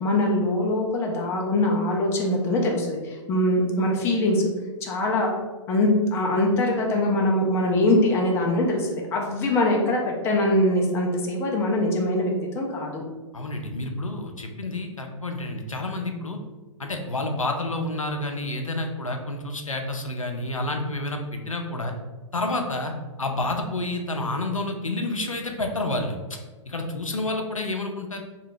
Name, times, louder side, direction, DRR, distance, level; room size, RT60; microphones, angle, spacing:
voice 1, 0.0-4.5 4.8-5.3 5.7-13.0, left 1 dB, 15° left, 0 dB, 0.4 m, -23 dB
voice 2, 13.3-16.4 16.8-21.9 22.3-22.9 23.2-26.4 26.7-28.2, left 2 dB, 90° left, 3 dB, 0.4 m, -29 dB
2.7 x 2.3 x 3.1 m, 1.3 s
figure-of-eight pair, 110°, 17 cm